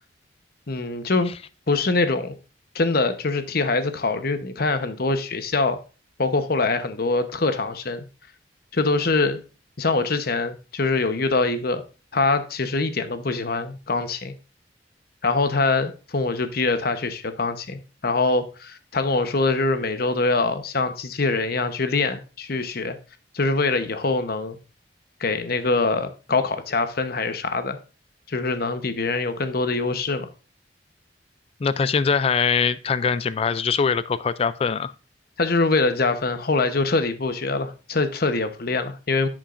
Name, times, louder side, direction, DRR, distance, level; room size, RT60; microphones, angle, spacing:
voice 1, 0.7-1.3 1.7-2.3 2.7-5.8 6.2-8.0 8.7-9.4 9.8-11.8 12.1-14.3 15.2-23.0 23.3-24.6 25.2-27.8 28.3-30.3 35.4-39.3, left 3 dB, 55° left, 0.9 m, -24 dB
voice 2, 31.6-34.9, left 5 dB, 30° left, 0.3 m, -22 dB
10.5 x 7.2 x 2.5 m
head